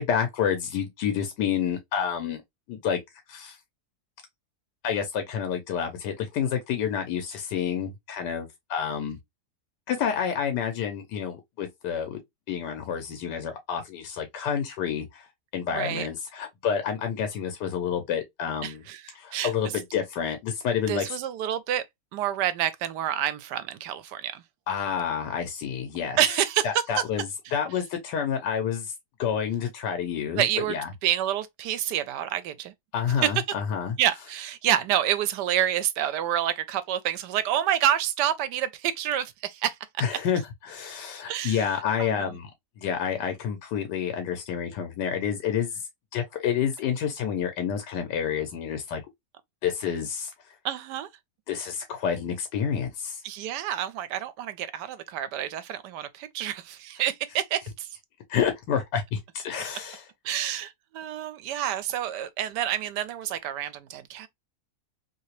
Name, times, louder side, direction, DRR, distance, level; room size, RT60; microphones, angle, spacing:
voice 1, 0.0-2.4 2.7-3.0 3.3-3.6 4.8-9.2 9.9-12.2 12.5-15.3 15.5-18.8 19.2-21.0 24.7-26.2 26.6-27.3 27.5-28.9 29.2-30.4 30.7-30.9 32.9-33.9 40.0-42.5 42.8-45.8 46.1-49.0 49.6-50.3 51.5-53.2 58.3-60.0, left 8 dB, 85° left, 1.3 m, -29 dB
voice 2, 15.7-16.1 18.6-19.7 20.9-21.8 22.1-24.4 26.2-27.0 30.4-30.8 31.0-32.7 33.2-33.4 34.0-39.8 41.3-41.7 42.0-42.4 50.6-51.1 53.2-58.0 60.2-64.3, right 11 dB, 80° right, 1.2 m, -28 dB
3.1 x 2.8 x 2.9 m
omnidirectional pair, 1.8 m